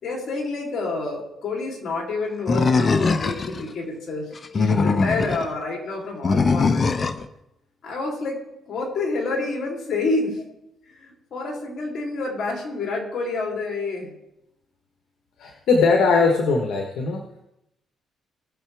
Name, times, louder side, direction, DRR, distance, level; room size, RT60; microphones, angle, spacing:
voice 1, 0.0-4.3 4.5-6.8 7.8-8.4 8.7-10.4 11.0-14.1, left 3 dB, 60° left, 0 dB, 3.4 m, -28 dB
Animal, 2.5-3.6 4.4-5.5 6.2-7.3, left 4 dB, 35° left, 0.7 m, -21 dB
voice 2, 15.4-17.2, left 4 dB, 75° left, 2 dB, 1.2 m, -20 dB
19.5 x 6.8 x 3.5 m, 0.87 s
cardioid pair, 90°, 0 cm